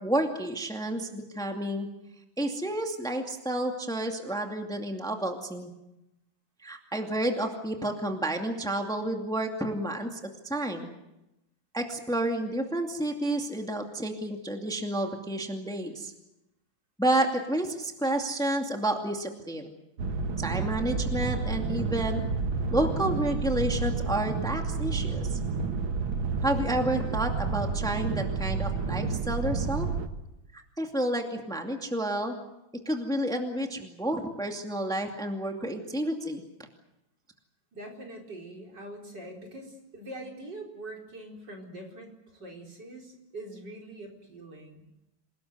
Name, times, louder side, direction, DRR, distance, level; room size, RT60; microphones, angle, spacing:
voice 1, 0.0-1.9 2.4-5.7 6.6-10.9 11.7-16.1 17.0-19.7 20.4-22.2 22.7-25.4 26.4-29.9 30.8-32.4 32.9-36.4, right 1 dB, ahead, 3 dB, 2.3 m, -30 dB
sound 1, 20.0-30.1, right 4 dB, 80° right, 2.3 m, -30 dB
voice 2, 37.7-44.8, right 1 dB, 60° right, 0 dB, 5.1 m, -43 dB
28.0 x 19.0 x 8.0 m, 0.90 s
omnidirectional pair, 2.1 m